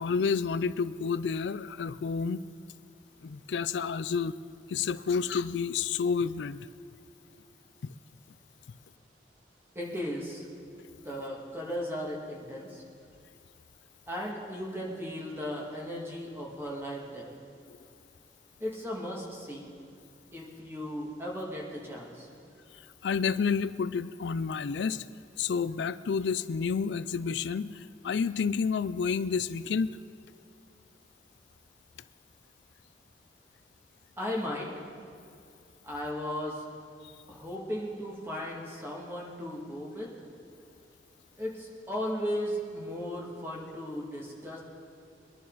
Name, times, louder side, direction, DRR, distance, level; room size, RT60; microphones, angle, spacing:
voice 1, 0.0-2.4 3.2-4.4 4.7-6.7 7.8-7.9 17.7-17.8 22.7-25.1 25.4-30.0 37.0-37.1, left 5 dB, 90° left, 15 dB, 0.4 m, -30 dB
voice 2, 9.7-10.5 11.0-12.8 14.1-17.3 18.6-19.7 20.3-22.3 34.2-34.8 35.8-36.6 37.3-40.1 41.4-44.6, equal, 15° right, -3 dB, 2.3 m, -36 dB
22.0 x 11.0 x 4.1 m, 2.5 s
head